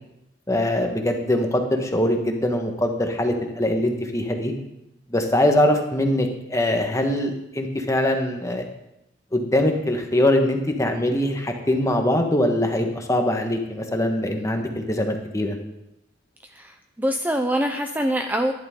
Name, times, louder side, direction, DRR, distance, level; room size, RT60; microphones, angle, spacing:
voice 1, 0.5-4.5 5.1-8.7 9.3-15.5, left 1 dB, 15° left, 3 dB, 1.4 m, -22 dB
voice 2, 16.5-18.5, equal, 10° right, 5 dB, 0.6 m, -24 dB
14.5 x 11.0 x 3.8 m, 0.87 s
head